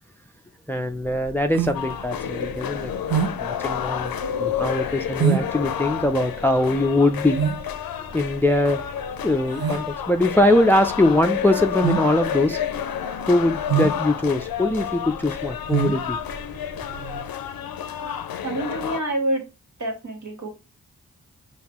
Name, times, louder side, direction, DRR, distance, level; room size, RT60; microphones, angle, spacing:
voice 1, 0.7-2.9 3.4-7.4 8.1-8.8 9.2-12.6 13.3-16.2, left 1 dB, 5° left, 0.4 m, -22 dB
sound 1, 0.9-17.3, right 9 dB, 85° right, 0.6 m, -28 dB
sound 2, 1.7-19.0, left 9 dB, 75° left, 0.5 m, -30 dB
voice 2, 17.9-19.5 19.8-20.5, right 1 dB, 55° right, 1.7 m, -28 dB
5.7 x 3.1 x 3.0 m
cardioid pair, 50°, 35 cm